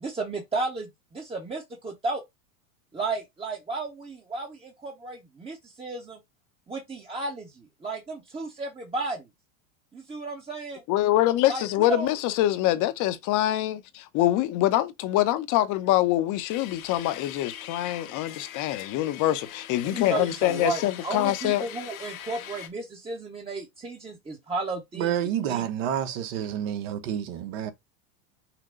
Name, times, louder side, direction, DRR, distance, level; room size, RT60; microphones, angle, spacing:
voice 1, 0.0-2.2 2.9-6.2 6.7-9.3 9.9-10.8 11.5-12.1 19.8-25.2 25.5-25.7, right 3 dB, 15° right, 1.0 m, -33 dB
voice 2, 10.9-21.6, left 14 dB, 45° left, 0.9 m, -25 dB
sound 1, 16.5-22.7, left 11 dB, 80° left, 1.5 m, -42 dB
voice 3, 25.0-27.7, right 10 dB, 65° right, 1.2 m, -29 dB
5.9 x 2.2 x 3.7 m
supercardioid pair, 120°, 42 cm